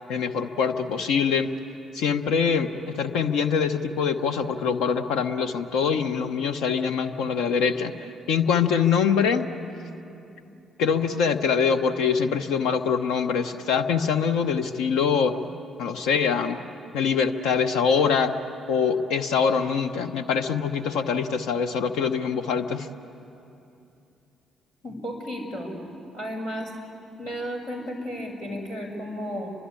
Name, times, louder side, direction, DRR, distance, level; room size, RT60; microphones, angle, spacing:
voice 1, 0.1-1.5 1.9-9.5 10.8-15.3 15.8-16.6 16.9-18.3 18.7-22.9, left 6 dB, 70° left, 8 dB, 0.9 m, -24 dB
voice 2, 24.8-25.7 26.1-26.7 27.2-29.5, equal, 90° left, -6 dB, 6.0 m, -33 dB
30.0 x 12.5 x 9.7 m, 2.7 s
hypercardioid pair, 45°, 0 cm